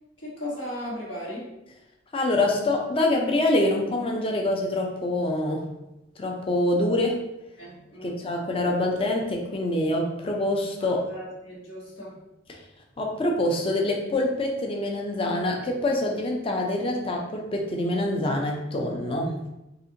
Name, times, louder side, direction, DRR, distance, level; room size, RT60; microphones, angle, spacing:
voice 1, 0.2-1.5 7.6-8.2 10.8-12.2, left 1 dB, 80° left, -6 dB, 1.3 m, -37 dB
voice 2, 2.1-5.7 6.2-7.2 8.0-11.0 12.5-12.6 13.0-19.4, left 1 dB, 30° left, 1 dB, 0.5 m, -25 dB
4.1 x 2.5 x 2.7 m, 0.91 s
head